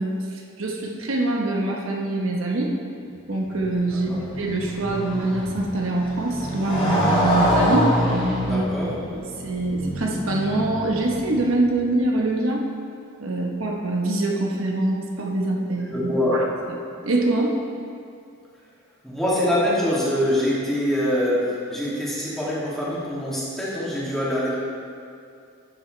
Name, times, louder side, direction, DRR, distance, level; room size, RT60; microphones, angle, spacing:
voice 1, 0.0-2.7 3.3-7.9 8.5-12.6 13.2-17.6, right 2 dB, 75° right, -1 dB, 1.2 m, -24 dB
Motorcycle, 3.5-11.6, equal, 25° left, 2.5 m, -26 dB
voice 2, 8.4-8.9 15.9-16.5 19.0-24.5, left 1 dB, ahead, -9 dB, 2.4 m, -24 dB
12.0 x 9.0 x 3.3 m, 2.4 s
head